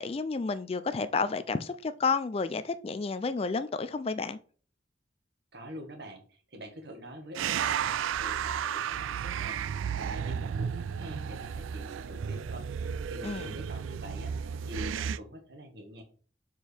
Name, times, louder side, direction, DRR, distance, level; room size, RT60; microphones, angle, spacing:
voice 1, 0.0-4.4 13.2-13.5, left 4 dB, 30° left, 0.3 m, -31 dB
voice 2, 5.5-14.3 14.6-16.0, equal, 55° right, 1.7 m, -45 dB
sound 1, 7.4-15.2, right 8 dB, 90° right, 0.3 m, -33 dB
6.9 x 4.6 x 3.4 m
head